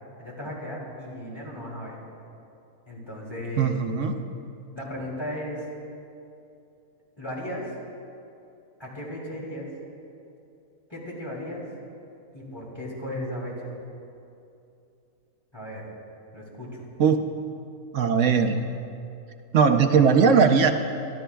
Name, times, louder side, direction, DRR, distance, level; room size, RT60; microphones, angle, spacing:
voice 1, 0.2-2.0 2.9-3.7 4.7-5.6 7.2-7.7 8.8-9.7 10.9-11.6 12.3-13.6 15.5-15.8 16.3-16.9, left 1 dB, 20° left, -5 dB, 2.9 m, -35 dB
voice 2, 3.6-4.2 17.0-17.2 17.9-18.6 19.5-20.7, right 6 dB, 65° right, 6 dB, 1.0 m, -19 dB
24.5 x 12.5 x 2.3 m, 2.7 s
omnidirectional pair, 1.5 m